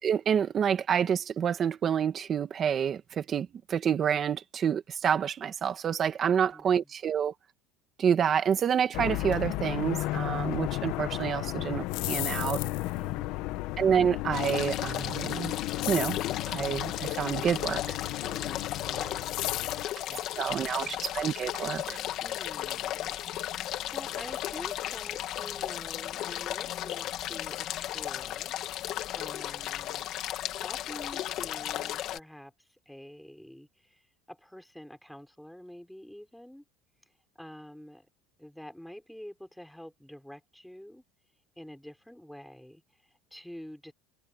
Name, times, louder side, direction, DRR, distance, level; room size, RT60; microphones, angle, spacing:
voice 1, 0.0-7.3 8.0-12.6 13.8-15.5 15.9-16.2 16.5-18.0 20.4-22.0, right 8 dB, 30° right, 1.8 m, -28 dB
voice 2, 6.2-6.9 18.2-19.3 19.6-21.0 22.2-27.7 27.9-30.1 30.5-34.0 34.3-36.6 37.4-38.1 38.4-41.0 41.6-43.9, equal, ahead, 4.8 m, -48 dB
sound 1, 8.9-19.8, left 17 dB, 65° left, 1.6 m, -34 dB
sound 2, 11.8-13.0 15.8-16.3 19.2-19.9, left 23 dB, 80° left, 2.9 m, -35 dB
sound 3, 14.3-32.2, left 13 dB, 50° left, 2.2 m, -35 dB
cardioid pair, 150°, 0 cm